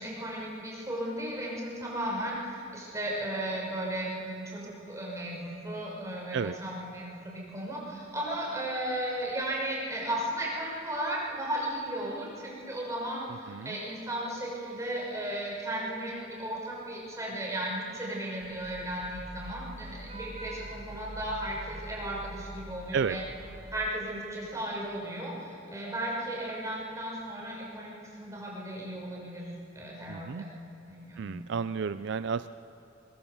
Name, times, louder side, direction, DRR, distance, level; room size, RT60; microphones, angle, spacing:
voice 1, 0.0-23.2 23.7-29.5 29.7-30.5 30.9-31.3, right 1 dB, 15° right, -4 dB, 6.1 m, -35 dB
Vehicle horn car horn honking / Traffic noise roadway noise, 18.4-23.7, right 1 dB, 35° right, 1.8 m, -44 dB
voice 2, 30.1-30.4 31.2-32.5, right 6 dB, 65° right, 13 dB, 0.4 m, -32 dB
22.0 x 21.5 x 7.2 m, 2.9 s
head